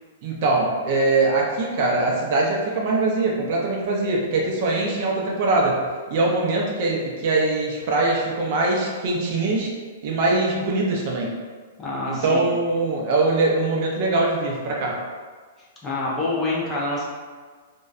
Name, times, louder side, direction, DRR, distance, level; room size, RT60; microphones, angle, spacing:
voice 1, 0.2-5.8 6.1-9.7 10.0-11.3 12.1-15.0, right 2 dB, 45° right, -2 dB, 0.4 m, -22 dB
voice 2, 11.8-12.5 15.8-17.0, left 2 dB, 15° left, -5 dB, 0.4 m, -26 dB
2.5 x 2.1 x 2.3 m, 1.5 s
hypercardioid pair, 160°, 0 cm